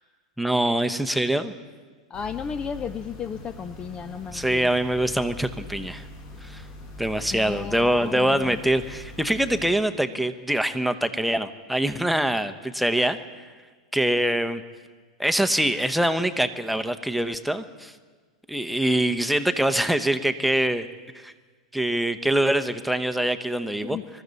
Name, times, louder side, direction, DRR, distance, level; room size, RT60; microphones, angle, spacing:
voice 1, 0.4-1.5 4.3-6.0 6.4-6.6 7.0-13.2 13.9-14.6 15.2-17.9 18.5-20.9 21.1-21.3 21.7-24.0, right 1 dB, ahead, 8 dB, 0.9 m, -24 dB
sound 1, 2.1-9.7, left 1 dB, 45° left, 5.8 m, -42 dB
voice 2, 2.1-4.7 7.3-8.6 23.8-24.1, left 7 dB, 25° left, 14 dB, 0.5 m, -34 dB
25.0 x 13.5 x 4.1 m, 1.4 s
hypercardioid pair, 95°, 3 cm